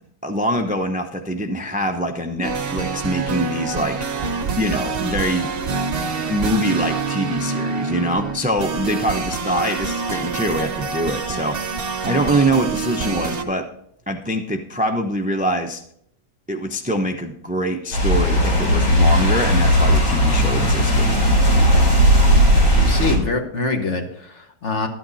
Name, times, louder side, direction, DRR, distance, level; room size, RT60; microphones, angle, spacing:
voice 1, 0.2-5.5 6.3-13.7 14.1-15.8 16.5-21.1, right 1 dB, 10° right, 5 dB, 0.3 m, -24 dB
sound 1, 2.4-13.4, right 4 dB, 40° right, 1.0 m, -26 dB
sound 2, 17.9-23.2, equal, 70° left, 4.1 m, -16 dB
voice 2, 22.7-24.9, left 3 dB, 45° left, 5 dB, 1.4 m, -24 dB
12.5 x 9.0 x 4.1 m, 0.67 s
omnidirectional pair, 1.8 m